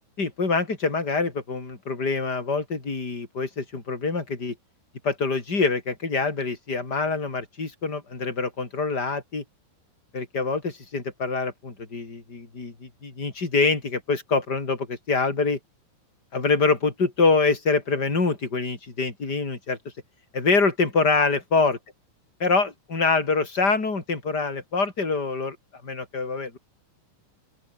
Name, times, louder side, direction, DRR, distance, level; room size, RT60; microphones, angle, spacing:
voice 1, 0.2-4.5 5.0-9.4 10.1-15.6 16.3-19.8 20.3-21.8 22.4-25.6 25.8-26.6, left 4 dB, 20° left, 4.5 m, -25 dB
open air
omnidirectional pair, 5.6 m